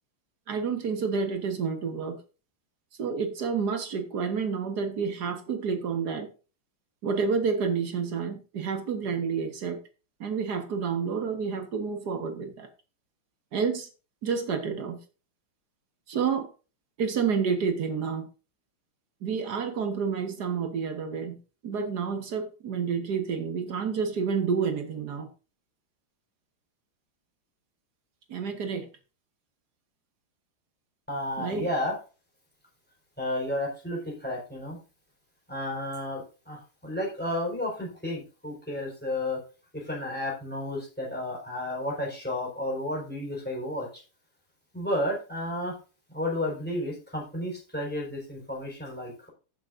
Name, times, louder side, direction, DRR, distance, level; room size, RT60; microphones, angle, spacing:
voice 1, 0.5-2.2 3.0-6.3 7.0-9.8 10.2-12.7 13.5-13.9 14.2-15.0 16.1-16.5 17.0-18.3 19.2-21.4 21.6-25.3 28.3-28.9 31.4-31.7, right 6 dB, 50° right, 6 dB, 1.9 m, -29 dB
voice 2, 31.1-32.0 33.2-34.8 35.5-39.4 39.7-43.9 44.7-45.7 46.1-49.3, left 1 dB, 5° left, -1 dB, 4.6 m, -32 dB
15.0 x 7.7 x 2.6 m, 0.34 s
omnidirectional pair, 2.4 m